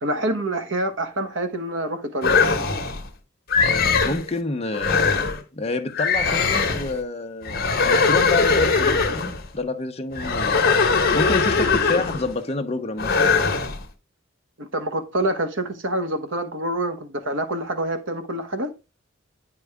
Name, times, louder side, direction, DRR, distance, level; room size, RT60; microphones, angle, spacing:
voice 1, 0.0-2.3 14.6-18.7, right 1 dB, 65° right, 1.1 m, -26 dB
sound 1, 2.2-3.0 3.5-4.2 4.7-5.4 5.9-6.9 7.4-9.4 10.1-12.3 13.0-13.8, left 4 dB, 50° left, 1.2 m, -20 dB
voice 2, 4.0-9.0 9.5-10.7 11.1-13.2, left 2 dB, 30° left, 0.8 m, -28 dB
9.2 x 4.8 x 3.5 m
head